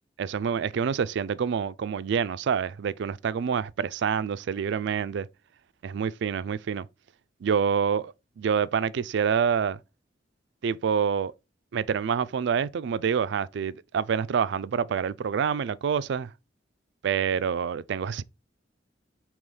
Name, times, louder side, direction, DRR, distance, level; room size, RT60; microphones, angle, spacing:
voice 1, 0.2-5.3 5.8-6.9 7.4-9.8 10.6-11.3 11.7-16.3 17.0-18.2, right 7 dB, 65° right, 0.4 m, -27 dB
5.4 x 2.9 x 3.3 m
head